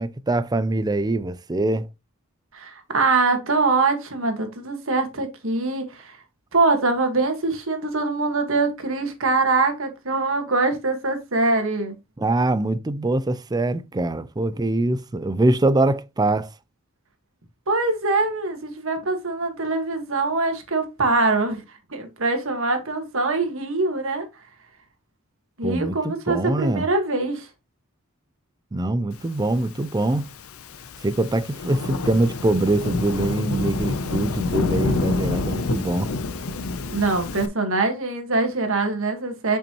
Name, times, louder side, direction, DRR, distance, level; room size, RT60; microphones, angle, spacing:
voice 1, 0.0-1.9 12.2-16.5 25.6-26.9 28.7-30.3 31.0-36.1, right 2 dB, 20° right, 0.4 m, -23 dB
voice 2, 2.5-6.2 6.5-11.9 17.7-21.6 21.9-24.3 25.6-27.5 36.9-39.6, right 3 dB, 70° right, 1.6 m, -23 dB
Thunderstorm / Rain, 29.8-37.5, left 3 dB, 90° left, 0.7 m, -28 dB
7.2 x 5.4 x 3.0 m
head